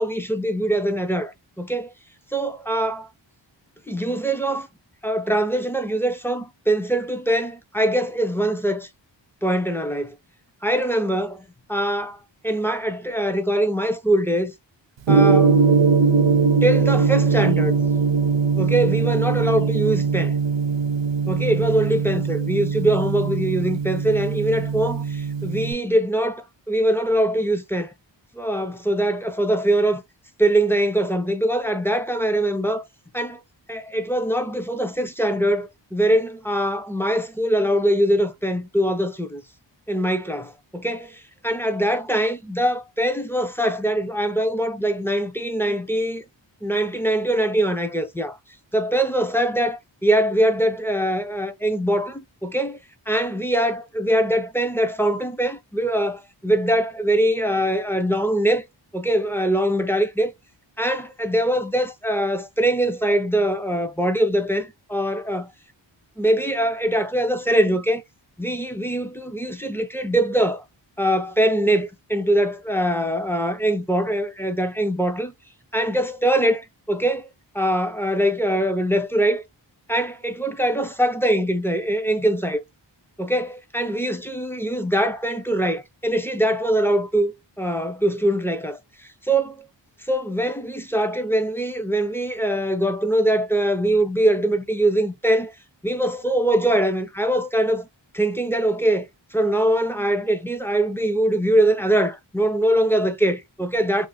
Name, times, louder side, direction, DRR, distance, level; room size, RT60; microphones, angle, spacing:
voice 1, 0.0-1.9 2.3-3.1 3.9-4.7 5.0-8.9 9.4-10.1 10.6-14.5 15.1-15.6 16.6-17.8 18.6-20.4 21.3-27.9 28.3-30.0 30.4-32.9 33.1-33.4 33.7-39.4 39.9-46.2 46.6-48.4 48.7-52.8 53.1-58.7 58.9-60.3 60.8-65.5 66.2-68.0 68.4-70.6 71.0-75.3 75.7-77.3 77.5-79.4 79.9-82.6 83.2-89.7 90.0-95.6 95.8-97.9 98.1-99.1 99.3-104.1, right 1 dB, 5° left, 0.4 m, -22 dB
Gong, 15.1-25.7, right 5 dB, 70° right, 0.6 m, -20 dB
2.5 x 2.1 x 3.9 m
wide cardioid pair, 65°, 46 cm